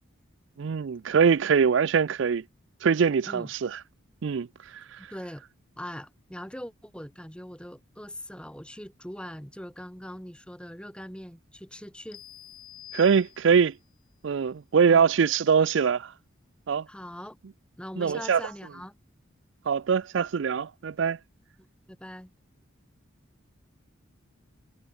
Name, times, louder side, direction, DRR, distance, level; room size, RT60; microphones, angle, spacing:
voice 1, 0.6-2.4 2.8-3.8 4.2-5.0 12.9-13.7 14.2-16.1 16.7-16.9 18.0-18.4 19.7-21.2, right 6 dB, 65° right, 0.4 m, -23 dB
voice 2, 5.1-5.4 5.8-12.2 14.9-15.1 16.9-17.4 17.8-19.0 21.9-22.3, equal, 5° left, 4.7 m, -41 dB
sound 1, 12.1-13.8, left 12 dB, 45° left, 5.5 m, -47 dB
head